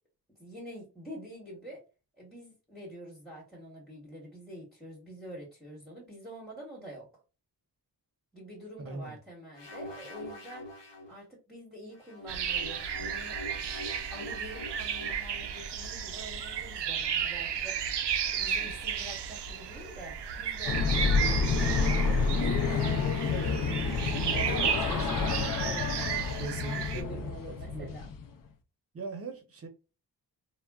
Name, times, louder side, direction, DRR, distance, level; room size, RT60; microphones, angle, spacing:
voice 1, 0.4-1.8 2.2-7.1 8.3-10.6 11.1-13.4 14.1-17.8 18.3-22.8 23.9-25.3 25.6-26.2 26.7-28.1, right 1 dB, ahead, 0.9 m, -46 dB
voice 2, 8.8-9.2 26.3-27.9 28.9-29.7, right 2 dB, 35° right, 0.7 m, -40 dB
sound 1, 9.5-11.2 11.9-15.6, left 1 dB, 80° left, 0.9 m, -45 dB
sound 2, 12.3-27.0, right 8 dB, 70° right, 0.5 m, -34 dB
sound 3, 20.7-28.3, left 4 dB, 50° left, 0.5 m, -29 dB
3.5 x 2.1 x 2.3 m
wide cardioid pair, 135°, 43 cm